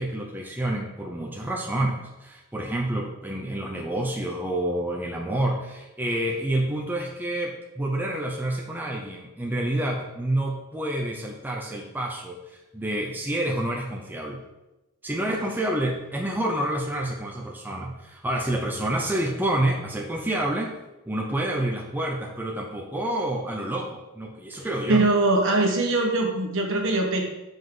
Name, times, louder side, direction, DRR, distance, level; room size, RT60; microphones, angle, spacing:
voice 1, 0.0-14.4 15.0-20.7 21.1-25.0, right 1 dB, 10° right, -1 dB, 0.6 m, -28 dB
voice 2, 24.9-27.2, right 2 dB, 60° right, 1 dB, 1.3 m, -22 dB
7.6 x 5.3 x 3.8 m, 0.99 s
head